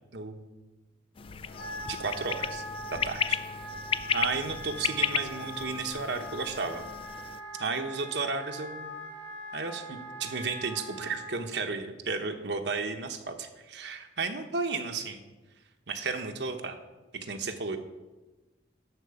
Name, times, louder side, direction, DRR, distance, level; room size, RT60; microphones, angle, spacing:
voice 1, 0.1-0.4 1.8-2.6 2.9-3.4 4.1-6.9 7.6-8.9 9.5-15.2 15.9-16.8 17.1-17.8, right 4 dB, 70° right, 6 dB, 1.0 m, -33 dB
sound 1, 1.2-7.4, left 7 dB, 30° left, 0.3 m, -34 dB
Wind instrument woodwind instrument, 1.4-11.3, equal, 85° left, 2.3 m, -42 dB
11.5 x 4.4 x 7.0 m, 1.2 s
head